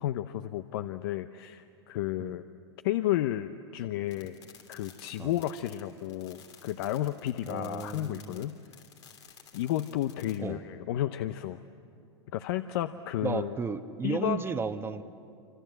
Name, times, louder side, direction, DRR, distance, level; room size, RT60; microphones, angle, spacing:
voice 1, 0.0-2.4 2.8-4.4 4.7-8.6 9.5-11.6 12.3-13.5 14.0-14.4, left 13 dB, 60° left, 10 dB, 0.8 m, -32 dB
sound 1, 4.1-10.4, left 7 dB, 85° left, 3.2 m, -54 dB
voice 2, 7.5-8.5 10.4-10.6 13.2-15.0, right 5 dB, 15° right, 9 dB, 1.2 m, -34 dB
27.0 x 25.5 x 7.8 m, 2.5 s
hypercardioid pair, 100°, 14 cm